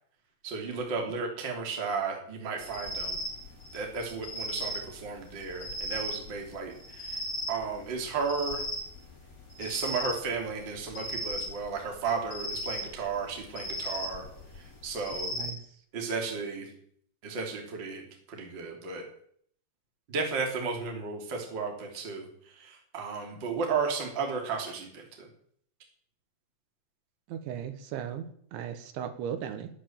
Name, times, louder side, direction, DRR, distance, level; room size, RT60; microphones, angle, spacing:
voice 1, 0.4-3.2 3.7-7.2 7.5-8.6 9.6-14.2 14.6-15.3 15.9-16.7 17.2-18.0 18.3-19.0 20.1-25.3, right 5 dB, 25° right, 2 dB, 2.9 m, -34 dB
sound 1, 2.6-15.5, equal, 20° left, 2.7 m, -37 dB
voice 2, 27.3-29.7, right 9 dB, 75° right, 8 dB, 3.5 m, -37 dB
19.5 x 8.0 x 7.4 m, 0.63 s
omnidirectional pair, 5.7 m